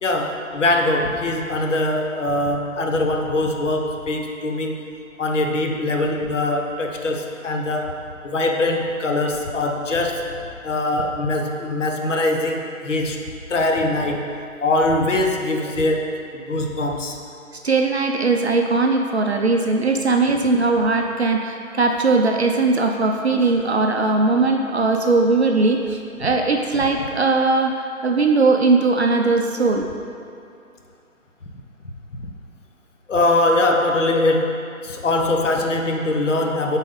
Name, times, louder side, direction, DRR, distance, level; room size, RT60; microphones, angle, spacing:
voice 1, 0.0-4.8 5.2-7.9 8.2-10.2 10.6-13.2 13.5-14.3 14.6-16.1 16.3-17.1 33.1-34.5 34.8-36.8, left 2 dB, 60° left, 2 dB, 0.9 m, -22 dB
voice 2, 17.6-27.7 28.0-29.9, right 3 dB, 50° right, 3 dB, 0.5 m, -19 dB
7.5 x 4.1 x 3.7 m, 2.5 s
figure-of-eight pair, 155°, 41 cm